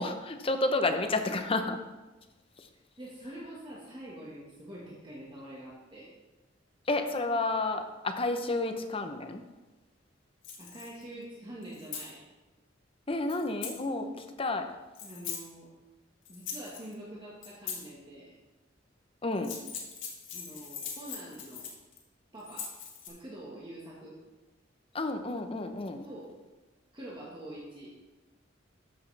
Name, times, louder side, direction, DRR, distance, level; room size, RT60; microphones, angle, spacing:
voice 1, 0.0-1.8 6.9-9.4 13.1-14.7 19.2-19.6 24.9-26.1, left 2 dB, 30° left, 6 dB, 0.7 m, -30 dB
voice 2, 3.0-6.1 10.6-12.2 15.0-15.7 16.3-18.3 20.3-21.7 22.3-22.7 23.1-24.1 26.0-26.3 26.9-28.0, right 1 dB, 25° right, -6 dB, 1.5 m, -45 dB
sound 1, 10.4-11.0 11.6-12.1 13.3-13.8 14.9-15.4 16.3-16.9 17.4-17.8 19.3-22.0 22.4-23.1, left 7 dB, 80° left, 1.8 m, -41 dB
13.0 x 6.2 x 3.3 m, 1.1 s
head